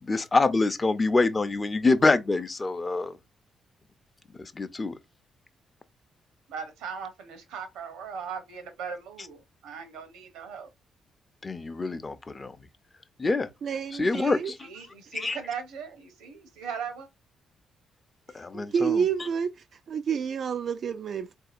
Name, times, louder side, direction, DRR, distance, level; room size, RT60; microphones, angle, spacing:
voice 1, 0.0-3.2 4.4-4.9 11.4-12.6 13.2-13.5 13.9-14.6 15.1-15.4 18.3-19.0, left 3 dB, 30° left, 0.6 m, -25 dB
voice 2, 6.5-10.7 14.6-17.1, right 6 dB, 75° right, 0.8 m, -38 dB
voice 3, 13.6-14.5 18.5-19.5 19.9-21.4, right 7 dB, 60° right, 0.3 m, -28 dB
4.0 x 2.7 x 2.5 m
hypercardioid pair, 40°, 0 cm